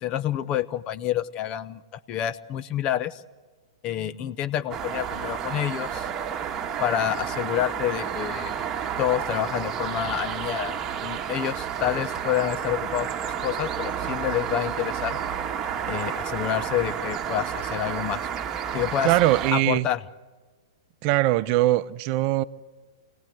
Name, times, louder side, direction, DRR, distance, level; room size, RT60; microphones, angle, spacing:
voice 1, 0.0-3.2 3.8-6.1 6.8-8.5 9.0-13.1 13.4-15.2 15.9-18.2 18.7-19.1 19.5-20.0, left 11 dB, 35° left, 0.8 m, -28 dB
sound 1, 4.7-19.5, right 8 dB, 20° right, 1.7 m, -31 dB
voice 2, 19.0-19.9 21.0-22.4, right 16 dB, 40° right, 0.7 m, -21 dB
26.5 x 17.5 x 9.3 m
hypercardioid pair, 120°, 3 cm